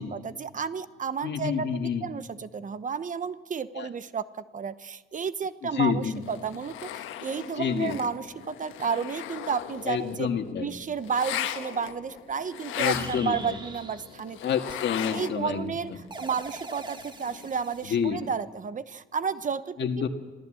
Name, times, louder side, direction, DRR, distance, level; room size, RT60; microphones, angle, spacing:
voice 1, 0.0-10.3 10.6-14.4 15.1-19.8, right 6 dB, 40° right, 14 dB, 0.9 m, -32 dB
voice 2, 1.2-2.1 3.7-3.9 5.6-6.2 7.6-8.0 9.8-10.7 12.8-13.6 14.4-15.8 17.9-18.2 19.8-20.1, left 7 dB, 60° left, 6 dB, 1.9 m, -28 dB
sound 1, 6.0-15.6 15.9-18.3, left 11 dB, 85° left, 1.3 m, -38 dB
sound 2, 12.2-12.3 12.9-14.2 14.7-14.8 16.1-17.9, right 2 dB, 25° right, 1.9 m, -41 dB
26.5 x 16.5 x 7.8 m, 1.3 s
cardioid pair, 90°, 20 cm